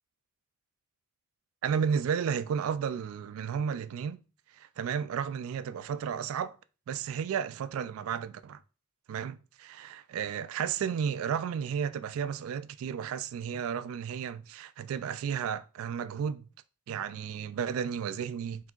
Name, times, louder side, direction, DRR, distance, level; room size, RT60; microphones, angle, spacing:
voice 1, 1.6-4.2 4.5-6.6 6.9-8.6 9.1-16.5 16.9-18.7, right 7 dB, 70° right, 0.3 m, -33 dB
5.9 x 2.7 x 2.3 m
head